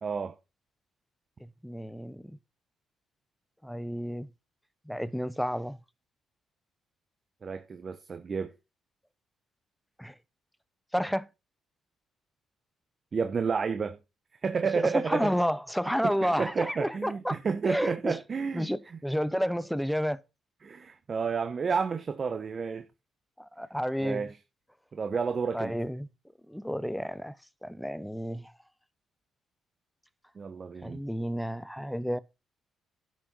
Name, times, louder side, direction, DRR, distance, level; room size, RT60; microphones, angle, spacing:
voice 1, 0.0-0.3 7.4-8.5 13.1-14.0 14.4-15.3 16.0-18.7 20.6-22.8 24.0-24.4 24.9-25.7 30.4-31.0, right 5 dB, 40° right, 1.0 m, -31 dB
voice 2, 1.6-2.4 3.6-4.3 4.9-5.8 10.0-10.1 10.9-11.3 14.8-17.4 17.7-18.2 18.5-20.2 23.4-24.3 25.5-26.1 26.5-27.4 27.6-28.5 30.8-32.2, equal, ahead, 0.8 m, -31 dB
10.5 x 6.4 x 5.5 m
cardioid pair, 90°, 0 cm